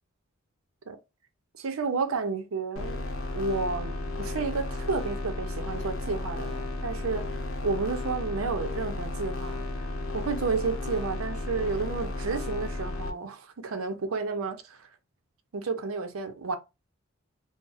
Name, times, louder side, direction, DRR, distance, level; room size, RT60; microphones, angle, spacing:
voice 1, 1.6-3.1 3.3-9.6 10.1-14.8 15.5-16.6, right 4 dB, 85° right, 0.5 m, -31 dB
sound 1, 2.8-13.1, left 2 dB, 85° left, 0.7 m, -33 dB
2.5 x 2.1 x 3.9 m
head